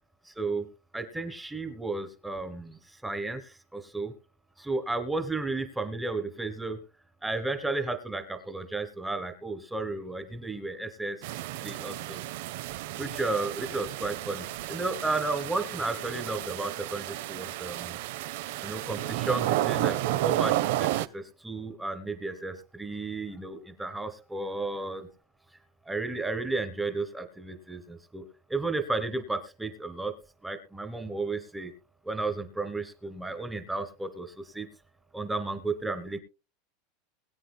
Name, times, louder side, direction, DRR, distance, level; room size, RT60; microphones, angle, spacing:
voice 1, 0.3-0.7 0.9-4.1 4.6-6.8 7.2-11.2 11.6-12.2 13.0-18.0 18.6-25.1 25.9-30.1 30.4-31.7 32.0-34.7 35.1-36.2, right 3 dB, 5° right, 9 dB, 1.3 m, -33 dB
sound 1, 11.2-21.1, right 15 dB, 65° right, 0.6 m, -32 dB
21.5 x 9.2 x 2.2 m, 0.29 s
supercardioid pair, 165°, 0 cm